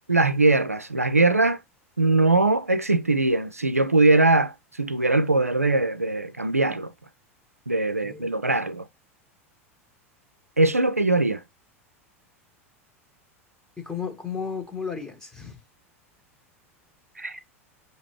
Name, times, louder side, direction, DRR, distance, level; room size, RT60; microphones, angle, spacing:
voice 1, 0.1-1.6 2.0-4.5 4.8-6.9 7.7-8.8 10.6-11.4 17.2-17.4, right 2 dB, 90° right, 0.4 m, -21 dB
voice 2, 13.8-15.6, left 6 dB, 10° left, 1.0 m, -33 dB
5.8 x 2.8 x 2.9 m
figure-of-eight pair, 85°, 8 cm